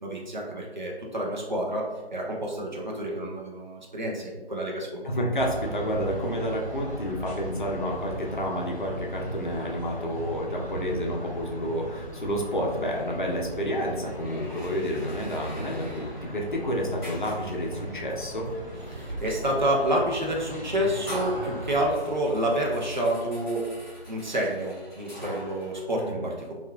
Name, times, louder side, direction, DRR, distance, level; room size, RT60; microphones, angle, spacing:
voice 1, 0.0-5.0 18.9-23.7 24.1-26.5, right 1 dB, 45° right, -2 dB, 0.5 m, -28 dB
voice 2, 5.0-18.5 26.0-26.3, equal, 50° left, -1 dB, 0.5 m, -30 dB
sound 1, 5.3-21.9, right 1 dB, 5° right, 0.8 m, -38 dB
sound 2, 13.8-25.8, equal, 25° left, 1.1 m, -42 dB
2.7 x 2.3 x 2.2 m, 1.2 s
figure-of-eight pair, 155°, 31 cm